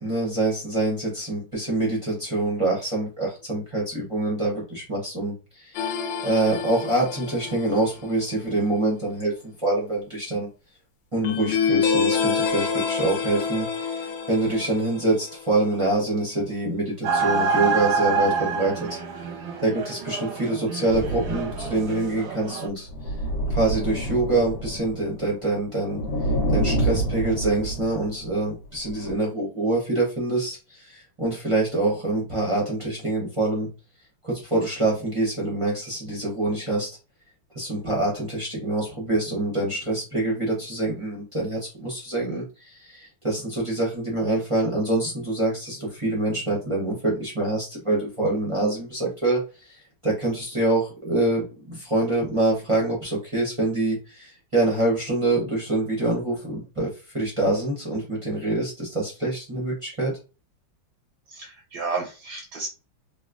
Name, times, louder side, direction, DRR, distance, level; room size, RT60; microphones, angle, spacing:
voice 1, 0.0-5.8 6.2-10.5 11.1-19.0 19.6-22.9 23.5-26.0 26.5-33.7 34.2-36.9 37.5-49.8 50.0-60.1, right 2 dB, 45° right, -4 dB, 0.4 m, -25 dB
sound 1, 5.7-8.1 11.2-15.7, left 6 dB, 85° left, 1.5 m, -27 dB
sound 2, 17.0-22.7, right 4 dB, 85° right, 1.7 m, -27 dB
sound 3, 20.9-22.2 22.9-25.3 25.6-28.5 28.9-29.1, right 1 dB, 55° left, 1.1 m, -28 dB
voice 2, 61.3-62.7, right 4 dB, 70° right, 2 dB, 1.0 m, -32 dB
4.1 x 2.2 x 2.4 m, 0.32 s
omnidirectional pair, 2.3 m